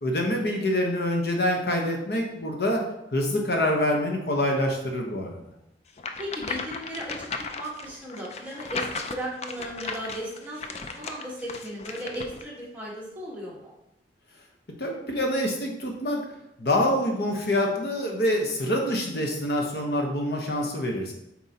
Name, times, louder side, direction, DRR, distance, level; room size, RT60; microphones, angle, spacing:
voice 1, 0.0-2.8 3.1-5.4 14.8-16.2 16.6-21.1, left 1 dB, 60° left, 1 dB, 1.0 m, -26 dB
sound 1, 6.0-12.4, left 4 dB, 35° left, 0.4 m, -36 dB
voice 2, 6.2-7.3 7.5-13.7, equal, 10° right, -6 dB, 1.5 m, -36 dB
7.4 x 4.5 x 2.9 m, 0.82 s
head